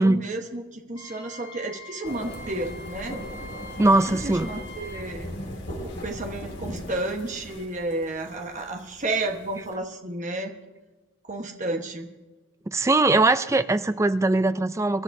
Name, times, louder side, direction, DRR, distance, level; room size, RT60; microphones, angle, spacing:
voice 1, 0.0-3.2 3.9-5.3 5.7-10.5 11.2-12.1, right 2 dB, 35° right, 1.2 m, -32 dB
Wind instrument woodwind instrument, 1.0-5.1, left 1 dB, 85° left, 4.8 m, -44 dB
sound 1, 2.0-9.7, left 1 dB, 55° left, 2.2 m, -38 dB
voice 2, 3.8-4.5 12.7-15.0, right 2 dB, 15° right, 0.3 m, -21 dB
24.5 x 12.0 x 2.7 m
head